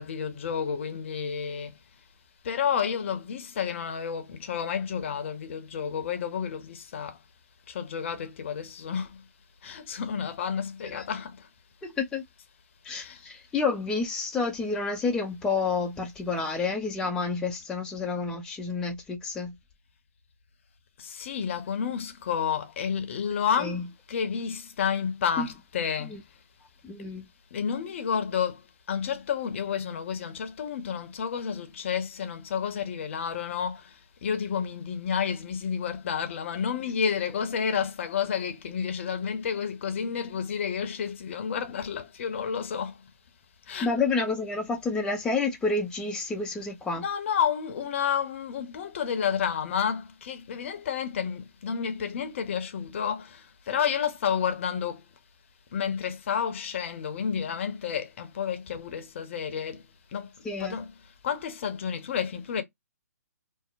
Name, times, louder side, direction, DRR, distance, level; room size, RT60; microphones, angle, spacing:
voice 1, 0.0-1.7 2.4-7.2 7.7-9.2 9.6-11.4 12.9-13.2 21.0-23.8 24.1-26.1 27.5-28.6 28.9-33.8 34.2-42.9 43.7-43.9 47.0-53.4 53.7-55.0 55.7-59.8 60.1-60.3 60.6-60.9 61.2-62.6, left 7 dB, 45° left, 0.7 m, -30 dB
voice 2, 11.8-12.2 12.8-19.5 23.6-23.8 25.4-25.5 26.1-26.2 26.8-27.3 43.8-47.0 60.4-60.8, left 4 dB, 10° left, 0.4 m, -29 dB
2.8 x 2.0 x 2.4 m
figure-of-eight pair, 135°, 9 cm